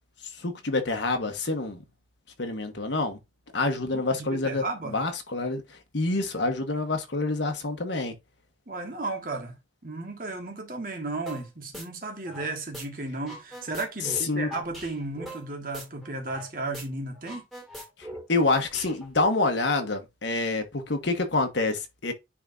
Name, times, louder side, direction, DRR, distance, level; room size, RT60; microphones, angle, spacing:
voice 1, 0.2-1.8 2.4-3.2 3.5-8.1 14.0-14.5 18.3-22.1, left 3 dB, 80° left, 1.3 m, -27 dB
voice 2, 3.9-5.0 8.7-9.6 9.8-17.4, right 2 dB, 50° right, 1.6 m, -34 dB
sound 1, 11.3-11.4 11.7-12.8 13.1-16.5 16.7-16.8 17.1-19.2, equal, ahead, 2.2 m, -41 dB
9.9 x 3.6 x 2.7 m
head